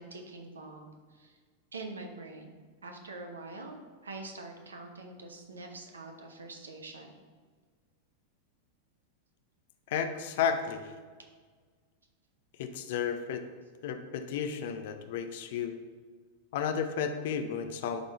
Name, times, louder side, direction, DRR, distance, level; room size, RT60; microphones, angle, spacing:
voice 1, 0.0-1.4 1.7-2.5 2.8-3.8 4.0-7.2, right 3 dB, 70° right, 4 dB, 1.0 m, -44 dB
voice 2, 9.9-10.9 12.6-13.5 13.8-15.8 16.5-18.0, left 7 dB, 55° left, 8 dB, 0.6 m, -32 dB
11.0 x 3.8 x 4.1 m, 1.5 s
figure-of-eight pair, 90°, 0 cm